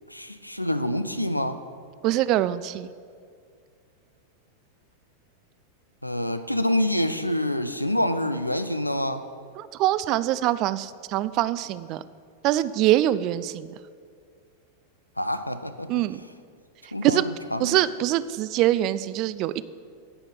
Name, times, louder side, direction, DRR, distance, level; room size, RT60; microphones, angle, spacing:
voice 1, 0.1-1.6 6.0-9.2 15.2-15.9 16.9-17.8, left 1 dB, 90° left, 10 dB, 0.5 m, -27 dB
voice 2, 2.0-2.9 9.6-12.0 12.4-13.7 15.9-16.2 17.0-17.3 17.6-19.6, right 14 dB, 40° right, 16 dB, 0.3 m, -24 dB
9.9 x 5.8 x 7.2 m, 2.2 s
figure-of-eight pair, 90°, 0 cm